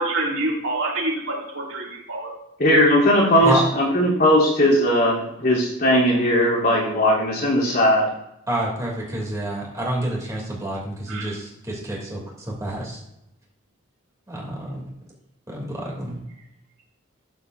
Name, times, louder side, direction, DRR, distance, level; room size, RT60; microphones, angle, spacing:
voice 1, 0.0-2.3 3.3-3.5 11.1-11.3, right 2 dB, 80° right, -3 dB, 2.6 m, -27 dB
voice 2, 2.6-8.1, equal, 45° left, -6 dB, 3.5 m, -18 dB
voice 3, 8.5-12.2 12.6-13.0 14.3-14.8 15.5-16.2, right 1 dB, 15° right, -3 dB, 3.0 m, -28 dB
12.5 x 8.0 x 2.7 m, 0.81 s
head